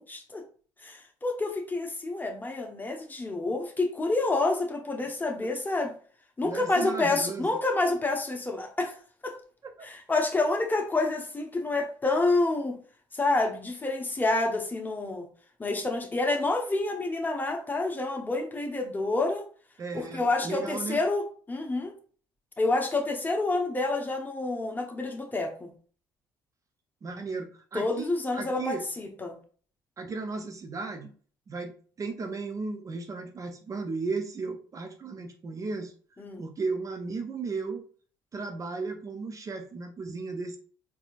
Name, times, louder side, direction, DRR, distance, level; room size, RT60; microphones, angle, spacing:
voice 1, 0.1-0.4 0.8-5.9 6.4-9.0 9.2-9.3 9.8-12.8 13.1-15.3 15.6-19.5 19.9-22.0 22.6-25.7 27.7-29.3 36.2-36.4, left 2 dB, 20° left, 3 dB, 0.9 m, -28 dB
voice 2, 6.4-7.6 9.8-9.9 19.8-21.0 27.0-28.8 30.0-31.1 31.5-35.9 36.4-37.8 38.3-40.6, right 4 dB, 35° right, 6 dB, 0.5 m, -35 dB
4.2 x 2.7 x 2.5 m, 0.43 s
hypercardioid pair, 60°, 10 cm